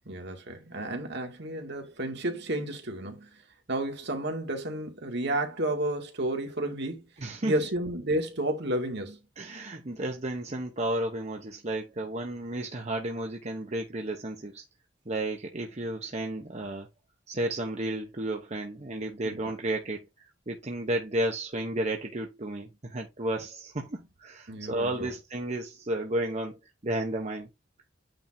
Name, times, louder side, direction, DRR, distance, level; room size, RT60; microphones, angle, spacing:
voice 1, 0.1-3.4 3.7-7.0 7.4-9.2 19.2-19.4 24.5-25.1, right 1 dB, 65° right, 2.1 m, -31 dB
voice 2, 7.2-7.5 9.4-14.6 15.1-16.9 17.3-20.1 20.5-27.5, right 1 dB, 35° right, 1.0 m, -32 dB
9.0 x 3.6 x 4.3 m
head